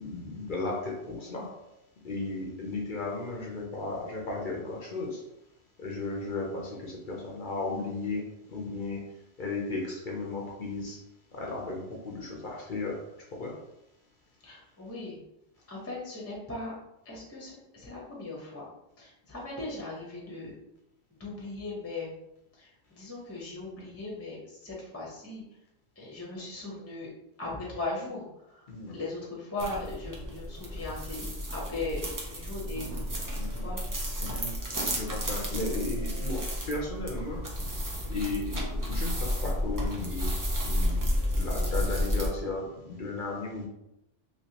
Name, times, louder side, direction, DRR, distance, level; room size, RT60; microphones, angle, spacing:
voice 1, 0.0-1.5 2.0-5.2 5.8-9.0 9.4-11.0 11.3-13.0 13.3-13.6 28.7-29.0 33.4-33.7 34.2-37.4 38.1-40.3 40.6-43.7, left 3 dB, 50° left, -2 dB, 0.7 m, -35 dB
voice 2, 14.4-15.2 15.7-16.7 17.0-18.7 19.0-20.5 21.1-22.1 22.6-25.4 26.0-27.1 27.4-32.0 32.3-33.2 33.6-33.8, left 2 dB, 15° left, -4 dB, 0.7 m, -38 dB
sound 1, 29.6-42.3, equal, 25° right, 0.4 m, -32 dB
3.1 x 3.0 x 2.8 m, 0.86 s
omnidirectional pair, 1.2 m